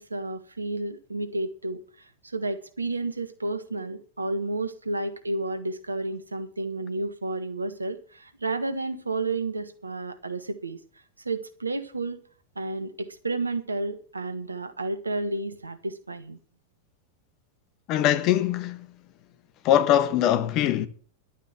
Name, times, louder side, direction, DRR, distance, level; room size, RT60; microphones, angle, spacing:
voice 1, 0.0-1.8 2.2-10.8 11.2-12.2 12.5-16.4, right 2 dB, 80° right, 1.4 m, -31 dB
voice 2, 17.9-18.9 19.6-20.9, left 11 dB, 40° left, 1.3 m, -22 dB
11.5 x 9.2 x 7.3 m
figure-of-eight pair, 90°, 0 cm